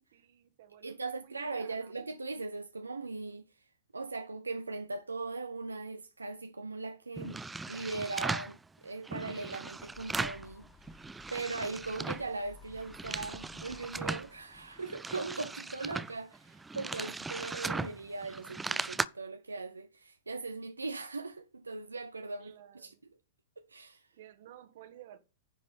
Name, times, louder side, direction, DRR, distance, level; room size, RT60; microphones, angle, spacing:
voice 1, 0.0-2.1 22.4-23.0 24.1-25.2, right 11 dB, 55° right, 1.3 m, -54 dB
voice 2, 0.8-7.4 7.7-10.7 11.3-22.9 23.6-24.1, right 3 dB, 85° right, 0.5 m, -39 dB
sound 1, 7.2-8.6 9.1-10.5 10.8-12.3 12.7-14.3 14.8-19.1, right 3 dB, 10° right, 0.4 m, -38 dB
sound 2, 9.7-15.0, left 5 dB, 30° left, 1.1 m, -57 dB
9.8 x 4.0 x 7.0 m
figure-of-eight pair, 105°, 0 cm